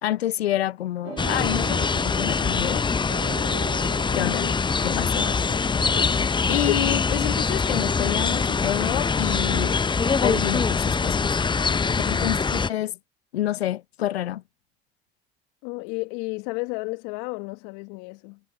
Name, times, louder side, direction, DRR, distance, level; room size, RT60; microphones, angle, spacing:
voice 1, 0.0-2.8 4.1-4.5 4.8-5.4 6.5-9.8 10.2-11.3 12.1-13.0 13.3-14.4, left 13 dB, 85° left, 0.7 m, -28 dB
sound 1, 1.0-6.1, right 12 dB, 55° right, 2.0 m, -40 dB
sound 2, 1.2-12.7, left 5 dB, 15° left, 0.5 m, -23 dB
voice 2, 4.1-4.6 5.8-6.3 11.6-12.0 15.6-18.4, left 30 dB, 70° left, 1.5 m, -33 dB
hypercardioid pair, 55°, 30 cm